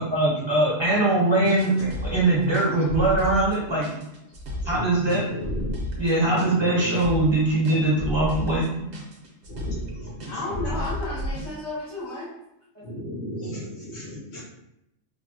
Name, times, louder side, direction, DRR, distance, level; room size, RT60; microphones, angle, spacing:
voice 1, 0.0-3.9 4.6-5.3 6.0-8.7, right 2 dB, 30° right, -6 dB, 0.6 m, -22 dB
voice 2, 1.1-1.8 4.7-5.8 6.2-7.0 9.5-10.8 12.8-14.4, left 1 dB, 60° left, -6 dB, 1.0 m, -35 dB
sound 1, 1.4-11.5, equal, 50° right, 0.8 m, -33 dB
voice 3, 10.3-12.3, left 2 dB, 90° left, -9 dB, 1.3 m, -32 dB
3.1 x 2.1 x 2.7 m, 0.85 s
omnidirectional pair, 1.4 m